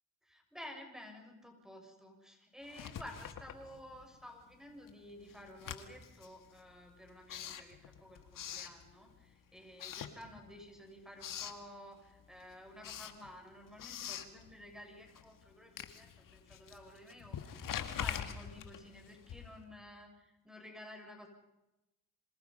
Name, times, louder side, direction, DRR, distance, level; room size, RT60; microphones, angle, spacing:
voice 1, 0.2-21.3, left 1 dB, ahead, 3 dB, 7.5 m, -52 dB
Writing, 2.6-4.2 4.5-9.3 9.7-10.7 11.0-11.6 12.1-19.7, left 9 dB, 80° left, 2.1 m, -45 dB
27.0 x 26.5 x 5.7 m, 0.96 s
cardioid pair, 65°, 32 cm